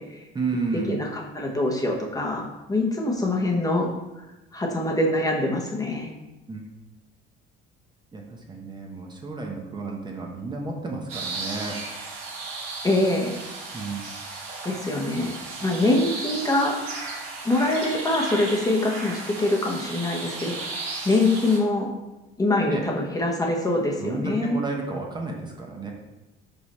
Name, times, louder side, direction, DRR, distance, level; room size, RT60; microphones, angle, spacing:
voice 1, 0.3-1.1 6.5-6.6 8.1-11.8 13.7-14.1 22.7-22.9 24.0-25.9, right 3 dB, 20° right, 0 dB, 0.9 m, -32 dB
voice 2, 0.9-3.9 4.5-6.1 12.8-13.4 14.6-15.3 15.6-16.8 17.4-20.8 21.0-21.9 22.4-24.6, left 2 dB, 15° left, -1 dB, 1.0 m, -24 dB
sound 1, 11.1-21.6, right 3 dB, 85° right, 1.7 m, -35 dB
5.3 x 4.7 x 4.2 m, 1.0 s
cardioid pair, 120°, 21 cm